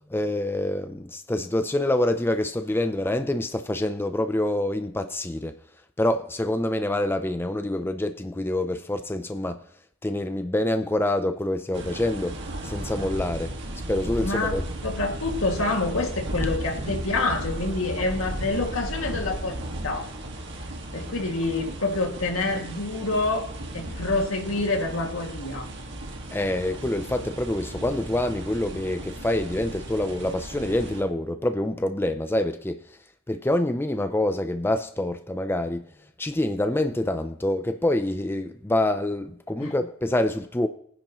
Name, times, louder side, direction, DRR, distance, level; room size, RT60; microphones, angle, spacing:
voice 1, 0.1-5.6 6.0-9.6 10.0-13.5 13.9-14.6 26.3-32.8 33.3-35.9 36.2-40.7, left 1 dB, 10° left, 0.5 m, -26 dB
sound 1, 11.7-31.0, right 1 dB, 60° right, 2.0 m, -35 dB
voice 2, 14.2-19.6 19.8-20.1 20.9-23.5 23.7-25.7 39.6-39.7, left 2 dB, 80° left, 2.3 m, -27 dB
22.5 x 10.0 x 3.1 m
head